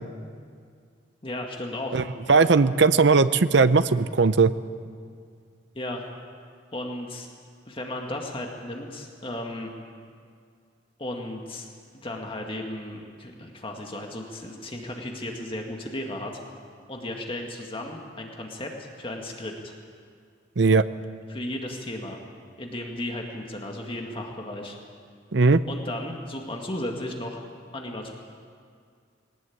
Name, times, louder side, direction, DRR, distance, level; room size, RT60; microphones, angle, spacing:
voice 1, 1.2-2.0 2.4-2.5 5.8-6.0 6.7-7.3 7.7-9.7 11.0-11.7 12.0-16.4 16.9-19.7 21.3-22.2 22.6-24.8 25.7-27.4 27.7-28.1, left 1 dB, 30° left, 1 dB, 1.9 m, -35 dB
voice 2, 2.3-4.5 20.6-20.9 25.3-25.6, right 4 dB, 65° right, 13 dB, 0.7 m, -18 dB
20.5 x 18.5 x 8.6 m, 2.2 s
head